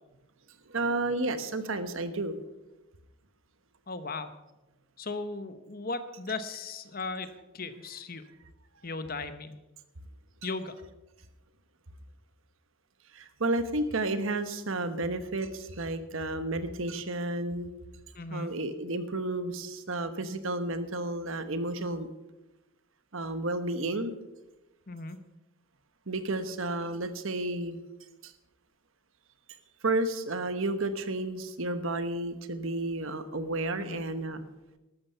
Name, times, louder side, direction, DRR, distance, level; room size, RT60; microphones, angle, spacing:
voice 1, 0.7-2.3 13.1-17.7 18.3-22.1 23.1-24.1 26.1-27.8 28.2-28.3 29.8-34.4, right 2 dB, 65° right, 11 dB, 1.1 m, -31 dB
voice 2, 3.9-4.3 5.0-8.2 8.8-9.6 10.4-10.7 18.1-18.5 24.9-25.2 33.8-34.0, left 3 dB, 40° left, 11 dB, 0.9 m, -37 dB
13.0 x 12.5 x 5.6 m, 1.0 s
head